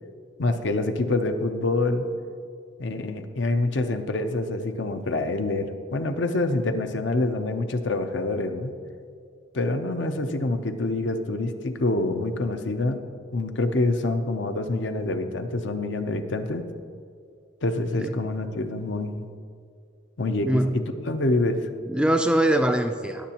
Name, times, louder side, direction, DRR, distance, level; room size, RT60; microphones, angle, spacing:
voice 1, 0.4-2.1 2.8-8.8 9.5-13.0 13.3-16.6 17.6-19.3 20.2-21.6, left 2 dB, 70° left, 8 dB, 0.6 m, -26 dB
voice 2, 20.5-20.8 21.9-23.3, right 1 dB, 5° right, 6 dB, 0.3 m, -22 dB
18.5 x 7.0 x 2.9 m, 2.2 s
head